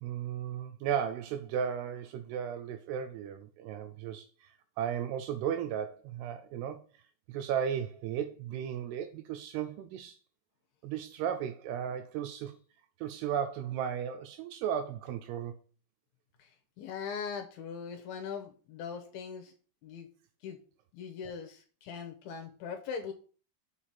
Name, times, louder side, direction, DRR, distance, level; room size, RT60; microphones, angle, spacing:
voice 1, 0.0-4.5 4.8-6.8 7.3-10.2 10.8-12.6 13.0-15.6, right 8 dB, 80° right, 2.5 m, -35 dB
voice 2, 16.8-19.5 19.8-20.1 20.4-20.6 20.9-23.1, left 6 dB, 75° left, 2.5 m, -40 dB
6.7 x 5.0 x 5.7 m
omnidirectional pair, 5.1 m